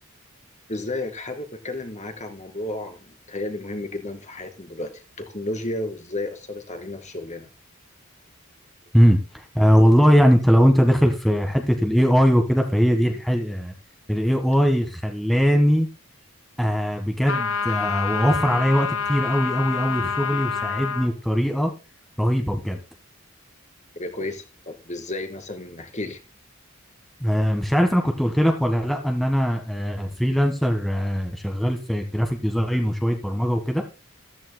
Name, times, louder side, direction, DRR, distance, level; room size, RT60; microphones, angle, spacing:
voice 1, 0.7-7.5 24.0-26.2, left 2 dB, 35° left, 6 dB, 2.4 m, -32 dB
voice 2, 8.9-13.7 14.1-15.9 16.6-21.7 22.2-22.8 27.2-33.8, equal, ahead, 3 dB, 1.5 m, -20 dB
sound 1, 17.3-21.1, left 6 dB, 70° left, 1.8 m, -27 dB
14.5 x 14.0 x 2.2 m, 0.31 s
head